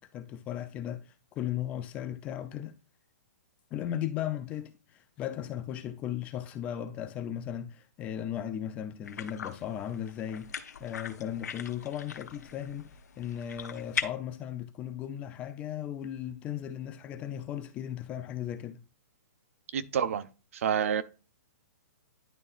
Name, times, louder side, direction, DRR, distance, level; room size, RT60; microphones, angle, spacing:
voice 1, 0.0-2.8 3.7-18.8, left 10 dB, 15° left, 0.4 m, -36 dB
sound 1, 9.1-14.0, left 7 dB, 85° left, 1.0 m, -40 dB
voice 2, 19.7-20.2 20.6-21.0, right 8 dB, 55° right, 0.7 m, -27 dB
11.0 x 4.0 x 2.4 m
hypercardioid pair, 165°, 9 cm